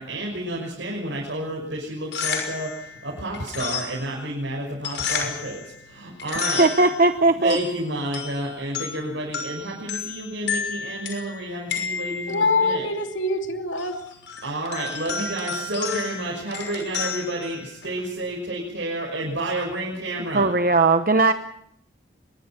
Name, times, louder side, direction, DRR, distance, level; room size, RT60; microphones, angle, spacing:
voice 1, 0.0-6.6 7.4-12.9 14.4-20.5, right 1 dB, 70° right, 6.0 m, -30 dB
sound 1, 1.9-18.2, left 6 dB, 70° left, 6.1 m, -33 dB
voice 2, 6.4-7.6 20.3-21.3, right 3 dB, 45° right, 0.9 m, -18 dB
voice 3, 12.3-14.0, left 3 dB, 90° left, 2.8 m, -24 dB
24.5 x 22.0 x 6.0 m
head